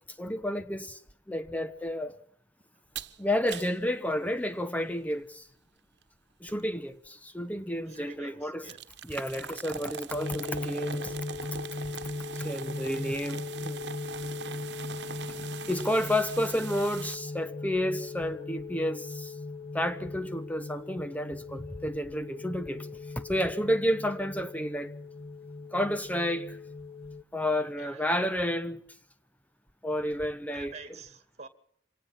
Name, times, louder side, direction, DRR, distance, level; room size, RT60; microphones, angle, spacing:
voice 1, 0.2-1.0 1.3-2.1 3.2-5.5 6.4-8.7 9.0-11.1 12.3-13.8 15.7-19.4 19.7-22.9 23.2-24.9 25.7-26.6 27.3-28.8 29.8-30.7, left 1 dB, 10° left, 1.0 m, -31 dB
sound 1, 2.9-3.2 3.5-3.8 6.5-6.6 7.0-7.1 8.7-17.2, right 6 dB, 70° right, 1.3 m, -42 dB
voice 2, 7.9-8.8 25.6-25.7 27.8-28.0 30.5-31.5, right 4 dB, 35° right, 2.4 m, -47 dB
sound 2, 10.1-27.2, left 3 dB, 30° left, 1.0 m, -39 dB
26.0 x 18.5 x 5.9 m
head